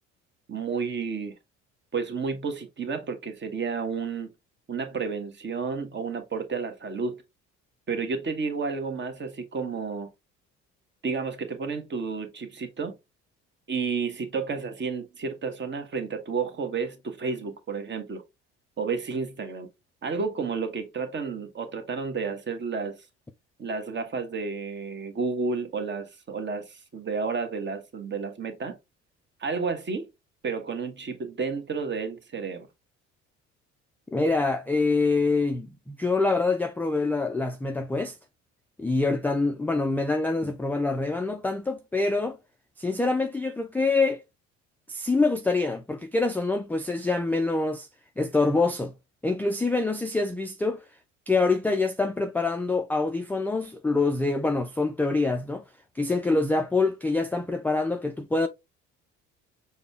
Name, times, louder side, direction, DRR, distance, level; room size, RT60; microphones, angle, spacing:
voice 1, 0.5-1.3 1.9-4.3 4.7-7.2 7.9-10.1 11.0-12.9 13.7-18.2 18.8-19.7 20.0-23.0 23.6-28.8 29.4-30.1 30.4-32.7, right 5 dB, 30° right, 1.2 m, -31 dB
voice 2, 34.1-38.2 38.8-42.4 42.8-44.2 44.9-47.9 48.2-48.9 49.2-50.8 51.3-55.6 56.0-58.5, left 3 dB, 5° left, 0.4 m, -25 dB
6.6 x 2.2 x 3.4 m
figure-of-eight pair, 55°, 37 cm